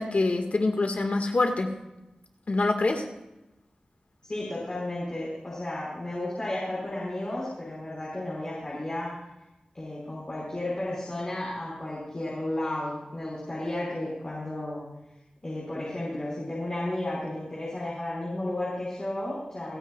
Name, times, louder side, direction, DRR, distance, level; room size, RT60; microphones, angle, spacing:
voice 1, 0.0-1.7 2.5-3.1, left 2 dB, 65° left, 4 dB, 2.0 m, -25 dB
voice 2, 4.2-9.1 9.7-14.8 15.4-19.8, left 1 dB, 35° left, -7 dB, 5.8 m, -33 dB
30.0 x 10.0 x 2.5 m, 0.98 s
wide cardioid pair, 90°, 3 cm